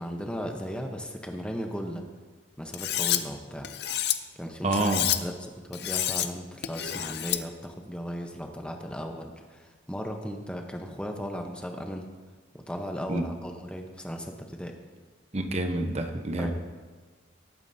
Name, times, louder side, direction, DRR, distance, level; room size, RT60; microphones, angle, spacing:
voice 1, 0.0-2.0 2.6-3.7 4.3-12.1 12.5-14.7 16.4-16.5, equal, 5° left, 3 dB, 0.9 m, -36 dB
Cutlery silverware, 2.7-3.2 3.6-4.1 4.7-5.2 5.7-6.3 6.6-7.4, left 12 dB, 55° left, 0.6 m, -28 dB
voice 2, 4.6-5.1 13.1-13.3 15.3-16.5, right 2 dB, 35° right, 6 dB, 0.9 m, -27 dB
19.0 x 8.9 x 2.8 m, 1.4 s
head